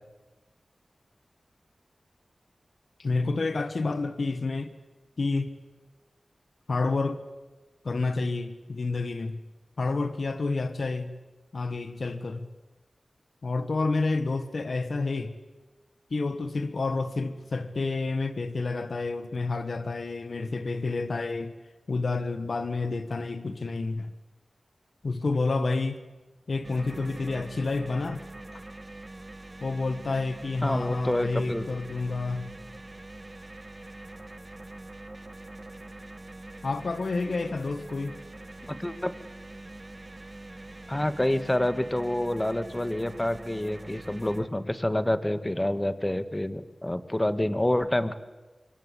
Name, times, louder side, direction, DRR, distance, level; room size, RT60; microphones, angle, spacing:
voice 1, 3.0-4.7 5.2-5.5 6.7-7.2 7.8-9.4 9.8-11.1 11.5-12.5 13.4-15.3 16.1-21.5 21.9-24.1 25.0-26.0 26.5-28.3 28.5-28.6 29.6-32.5 36.6-38.2, left 3 dB, 75° left, 1.6 m, -29 dB
sound 1, 26.6-44.5, right 2 dB, 40° right, 2.0 m, -44 dB
voice 2, 30.6-31.7 38.7-39.1 40.9-48.1, left 1 dB, 20° left, 1.8 m, -28 dB
26.5 x 24.5 x 8.4 m
cardioid pair, 40°, 0 cm